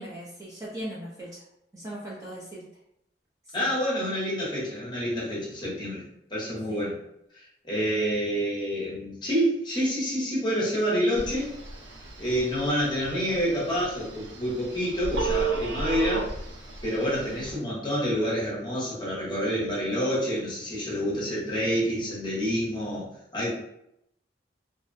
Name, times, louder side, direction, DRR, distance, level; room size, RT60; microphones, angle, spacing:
voice 1, 0.0-1.4 1.7-2.7 3.6-3.7 6.7-6.8, right 1 dB, 20° right, -6 dB, 0.4 m, -39 dB
voice 2, 3.5-6.0 6.3-7.0 7.6-11.5 12.2-16.3 16.8-23.1 23.3-23.5, equal, 25° left, -6 dB, 0.8 m, -28 dB
Telephone, 11.2-17.5, right 4 dB, 85° right, 0.5 m, -34 dB
2.5 x 2.0 x 2.5 m, 0.79 s
head